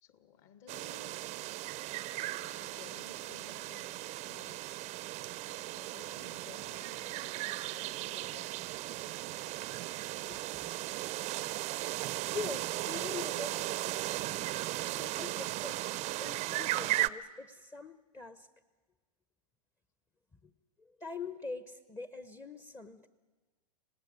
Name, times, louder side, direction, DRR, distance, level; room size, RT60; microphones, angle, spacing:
voice 1, 0.0-1.1 2.4-4.9 5.4-9.2, left 8 dB, 50° left, 9 dB, 2.6 m, -57 dB
sound 1, 0.7-17.1, right 17 dB, 35° right, 0.7 m, -37 dB
voice 2, 10.3-10.7 12.3-14.5 15.0-15.8 16.2-18.5 20.4-20.5 20.8-23.1, left 4 dB, 15° left, 12 dB, 1.0 m, -44 dB
26.0 x 18.0 x 9.6 m, 1.3 s
hypercardioid pair, 110°, 20 cm